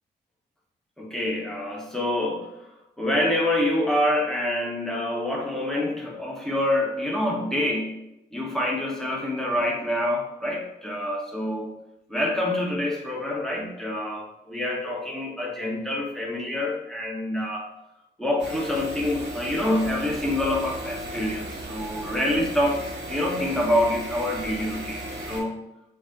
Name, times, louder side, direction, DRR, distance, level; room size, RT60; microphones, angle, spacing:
voice 1, 1.0-2.5 3.0-8.0 8.3-11.7 12.1-17.7 18.2-22.8 23.1-25.6, left 1 dB, ahead, -2 dB, 1.4 m, -26 dB
sound 1, 18.4-25.4, right 1 dB, 70° right, 1.3 m, -36 dB
4.1 x 2.5 x 4.0 m, 0.87 s
supercardioid pair, 45°, 19 cm